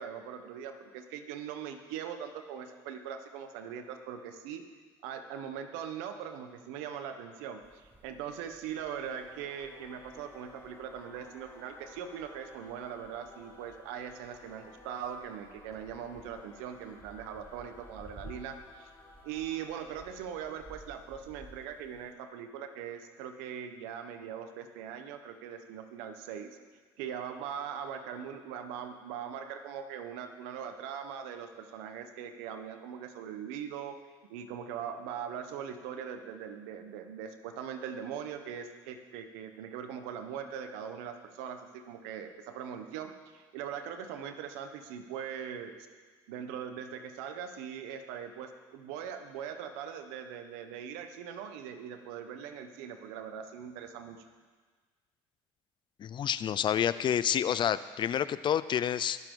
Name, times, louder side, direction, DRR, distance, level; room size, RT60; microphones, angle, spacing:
voice 1, 0.0-4.6 5.0-18.9 19.2-26.6 27.0-34.0 34.3-45.8 46.3-54.2, right 8 dB, 80° right, 7 dB, 1.2 m, -41 dB
sound 1, 7.6-22.1, equal, 15° right, 1.3 m, -56 dB
Singing / Musical instrument, 8.9-21.8, left 2 dB, 30° left, 3.2 m, -56 dB
voice 2, 56.0-59.2, left 9 dB, 45° left, 15 dB, 0.5 m, -29 dB
21.5 x 7.3 x 3.9 m, 1.5 s
supercardioid pair, 80°, 11 cm